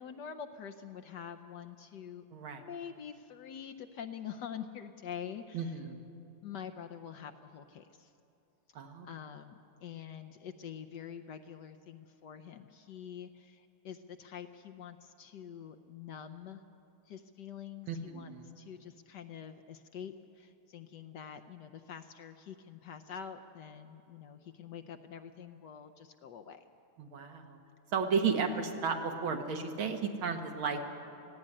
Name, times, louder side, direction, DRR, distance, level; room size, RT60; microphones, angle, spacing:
voice 1, 0.0-2.2 2.5-5.7 6.4-8.1 9.0-16.6 17.1-26.6 28.5-28.6, left 8 dB, 70° left, 7 dB, 1.1 m, -46 dB
voice 2, 2.3-2.6 5.5-6.1 8.8-9.1 17.9-18.5 27.0-27.6 27.9-30.9, right 5 dB, 75° right, 5 dB, 2.2 m, -33 dB
17.5 x 15.0 x 9.9 m, 2.7 s
omnidirectional pair, 2.3 m